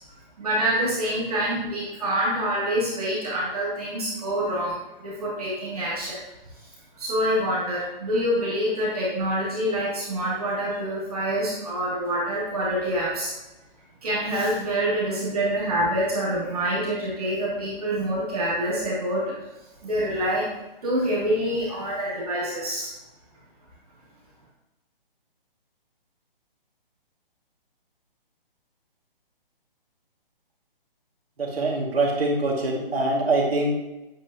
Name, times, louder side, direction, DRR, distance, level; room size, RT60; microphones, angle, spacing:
voice 1, 0.4-6.2 7.0-13.3 14.0-19.4 19.8-20.5 20.8-22.9, right 1 dB, 40° right, -7 dB, 2.6 m, -26 dB
voice 2, 31.4-33.7, right 2 dB, 85° right, -2 dB, 2.3 m, -24 dB
8.5 x 5.4 x 2.9 m, 0.99 s
hypercardioid pair, 180°, 29 cm